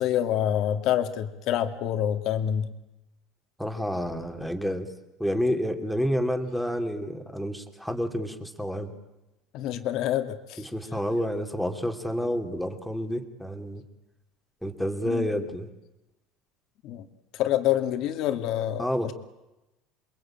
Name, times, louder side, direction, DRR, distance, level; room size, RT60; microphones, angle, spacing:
voice 1, 0.0-2.7 9.5-10.6 15.0-15.3 16.8-17.1 17.3-19.1, left 11 dB, 60° left, 7 dB, 2.4 m, -27 dB
voice 2, 3.6-4.9 5.2-8.9 10.6-13.8 14.6-15.7 18.8-19.1, equal, ahead, 5 dB, 2.9 m, -29 dB
28.5 x 22.0 x 8.9 m, 0.96 s
supercardioid pair, 125°, 0 cm